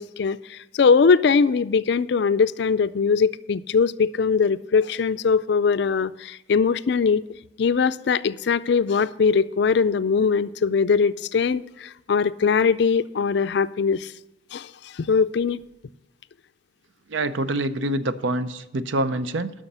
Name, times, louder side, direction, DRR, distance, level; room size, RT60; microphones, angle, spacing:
voice 1, 0.0-7.2 7.6-14.1 14.5-14.7 15.0-15.6, left 5 dB, 60° left, 14 dB, 0.4 m, -21 dB
voice 2, 17.1-19.5, right 1 dB, 75° right, 12 dB, 0.6 m, -26 dB
11.5 x 6.3 x 6.8 m, 0.94 s
head